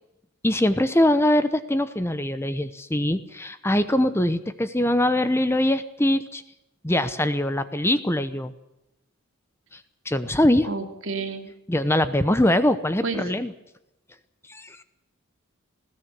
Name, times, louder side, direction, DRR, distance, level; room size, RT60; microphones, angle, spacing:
voice 1, 0.4-6.4 6.8-8.5 9.7-10.7 11.7-13.5 14.5-14.8, left 1 dB, 10° left, 12 dB, 0.9 m, -22 dB
voice 2, 10.6-11.5 13.0-13.3, right 3 dB, 65° right, 6 dB, 2.8 m, -30 dB
20.0 x 16.5 x 8.2 m, 0.90 s
head